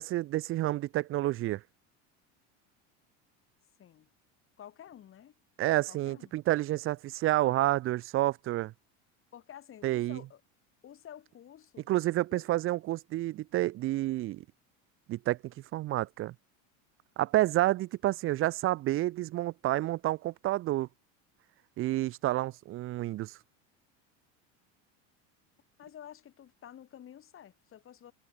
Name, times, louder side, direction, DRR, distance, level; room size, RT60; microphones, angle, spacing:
voice 1, 0.0-1.6 5.6-8.7 9.8-10.2 11.9-14.4 15.1-16.3 17.2-20.9 21.8-23.4, right 16 dB, 35° right, 0.5 m, -29 dB
voice 2, 3.8-4.1 4.6-5.3 5.9-6.4 9.3-10.4 10.8-12.0 12.3-12.5 25.8-28.1, left 10 dB, 35° left, 3.8 m, -51 dB
supercardioid pair, 125°, 36 cm